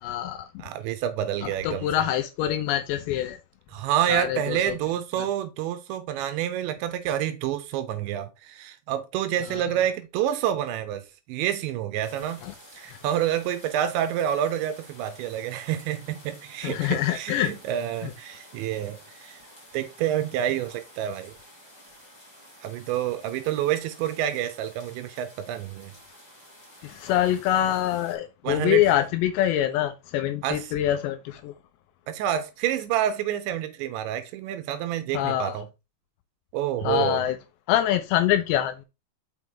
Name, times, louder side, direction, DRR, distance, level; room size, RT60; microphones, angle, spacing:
voice 1, 0.0-0.5 1.4-3.4 4.1-4.8 5.2-5.3 9.5-9.6 12.4-12.5 12.9-13.0 16.6-17.5 18.0-18.1 26.8-31.5 35.1-35.6 36.8-37.4 37.7-38.9, left 12 dB, 80° left, 2.6 m, -25 dB
voice 2, 0.6-2.0 3.7-12.4 12.7-19.4 19.7-21.3 22.6-25.9 28.4-28.8 30.4-30.6 32.1-35.7 36.5-37.2, right 11 dB, 80° right, 3.0 m, -28 dB
sound 1, 12.0-28.1, equal, 10° left, 2.1 m, -51 dB
6.3 x 5.7 x 3.5 m
omnidirectional pair, 5.4 m